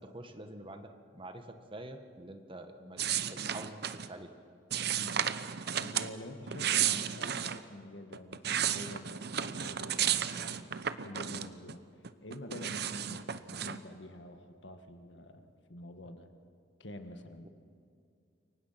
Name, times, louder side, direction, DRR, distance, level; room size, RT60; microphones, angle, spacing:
voice 1, 0.0-3.0 3.3-4.3 17.4-17.5, right 1 dB, 30° right, 6 dB, 1.6 m, -46 dB
sound 1, 3.0-4.1 4.7-6.1 6.5-7.6 8.1-11.7 12.0-13.8, right 9 dB, 60° right, 0.9 m, -33 dB
voice 2, 5.8-11.8 12.2-16.3 16.8-17.5, left 1 dB, 80° left, 6 dB, 1.9 m, -47 dB
28.5 x 24.0 x 6.0 m, 2.4 s
head